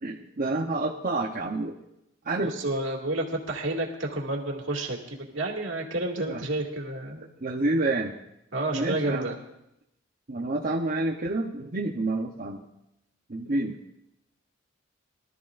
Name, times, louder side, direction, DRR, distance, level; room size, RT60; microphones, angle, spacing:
voice 1, 0.0-1.7 2.2-2.5 6.3-6.4 7.2-8.1 8.7-9.3 10.3-12.6 13.3-13.8, right 2 dB, 45° right, -2 dB, 1.0 m, -28 dB
voice 2, 2.4-7.2 8.5-9.4, right 2 dB, 70° right, 0 dB, 2.3 m, -30 dB
23.0 x 13.0 x 2.6 m, 0.83 s
head